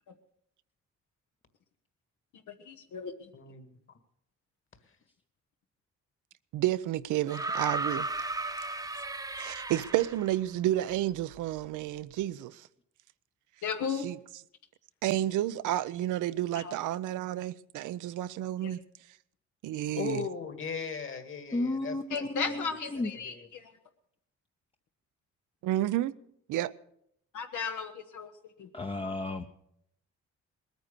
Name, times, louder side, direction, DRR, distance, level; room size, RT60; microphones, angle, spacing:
voice 1, 2.6-3.3 13.6-14.0 16.5-16.7 18.6-18.7 22.1-23.7 27.3-28.3 28.6-28.7, left 6 dB, 75° left, 1.2 m, -35 dB
voice 2, 3.3-3.8 19.9-22.3 23.0-23.5, left 6 dB, 45° left, 1.9 m, -38 dB
voice 3, 6.5-8.1 9.4-12.7 14.0-14.2 15.0-18.8 19.6-20.2 25.6-26.2 26.5-26.7, right 13 dB, 85° right, 0.6 m, -30 dB
sound 1, 7.3-10.3 11.6-11.7, right 2 dB, 10° right, 0.9 m, -35 dB
voice 4, 21.5-22.6 22.9-23.1 28.7-29.4, left 2 dB, 20° left, 0.7 m, -33 dB
20.0 x 9.3 x 6.8 m
cardioid pair, 90°, 30 cm